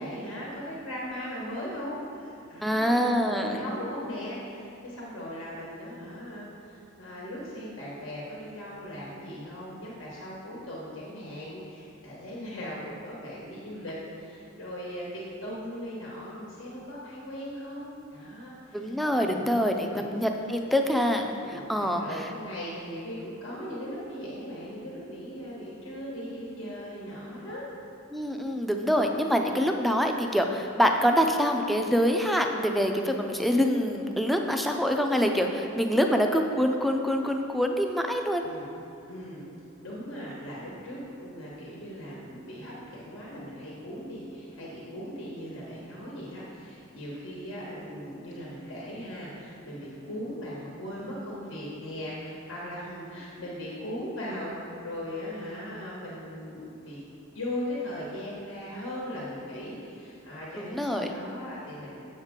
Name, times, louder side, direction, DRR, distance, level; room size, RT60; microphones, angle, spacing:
voice 1, 0.0-20.1 21.4-27.7 38.4-38.8 39.1-39.4 39.8-57.0 57.3-62.0, equal, 75° left, -6 dB, 1.4 m, -39 dB
voice 2, 2.6-3.6 18.7-21.4 21.7-22.0 28.1-38.5 60.6-61.1, equal, ahead, 3 dB, 0.4 m, -25 dB
7.2 x 7.2 x 3.7 m, 2.6 s
head